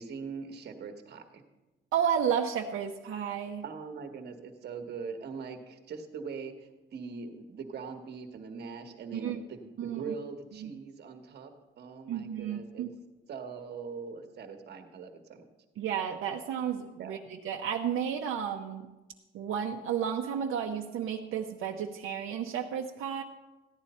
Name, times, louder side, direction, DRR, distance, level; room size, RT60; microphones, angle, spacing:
voice 1, 0.0-1.4 3.6-11.5 11.8-12.9 13.3-15.4 17.0-17.2, right 5 dB, 50° right, 6 dB, 1.3 m, -42 dB
voice 2, 1.9-3.6 9.1-9.4 9.8-10.1 10.6-10.7 12.1-12.9 15.8-18.9 19.3-23.2, right 8 dB, 80° right, 1 dB, 0.8 m, -32 dB
15.0 x 10.5 x 4.2 m, 1.1 s
cardioid pair, 170°, 21 cm